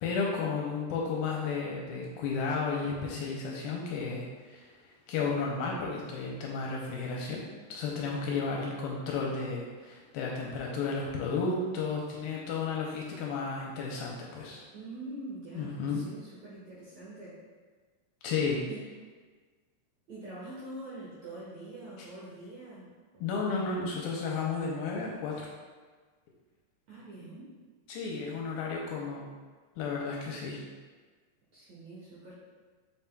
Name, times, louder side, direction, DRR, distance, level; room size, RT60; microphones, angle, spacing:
voice 1, 0.0-7.4 7.7-14.6 15.6-16.0 18.2-18.6 23.2-25.5 27.9-29.3 29.8-30.6, left 4 dB, 80° left, -2 dB, 2.3 m, -33 dB
voice 2, 14.7-17.4 18.7-18.8 20.1-23.7 26.9-27.5 31.5-32.3, right 2 dB, 70° right, -8 dB, 1.7 m, -45 dB
7.0 x 5.9 x 2.2 m, 1.4 s
omnidirectional pair, 4.6 m